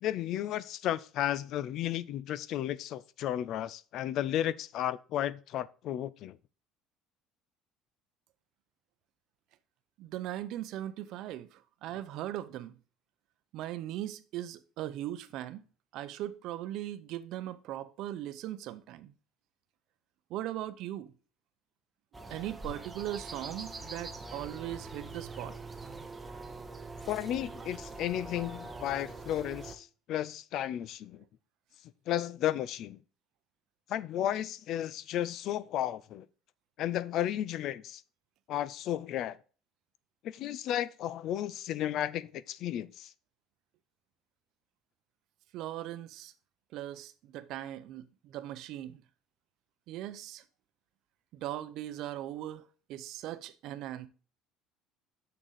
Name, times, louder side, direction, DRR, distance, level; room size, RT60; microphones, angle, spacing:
voice 1, 0.0-6.4 27.1-31.2 32.1-33.0 33.9-36.3 36.8-38.0 38.5-39.4 40.3-43.1, left 12 dB, 50° left, 0.4 m, -33 dB
voice 2, 10.0-12.8 13.5-15.6 15.9-19.1 20.3-21.1 22.3-25.6 45.5-46.3 46.7-49.0 49.9-50.4 51.3-52.6 52.9-54.1, right 13 dB, 55° right, 0.6 m, -39 dB
sound 1, 22.1-29.8, right 3 dB, 10° right, 0.7 m, -44 dB
6.6 x 6.3 x 4.0 m
cardioid pair, 165°, 0 cm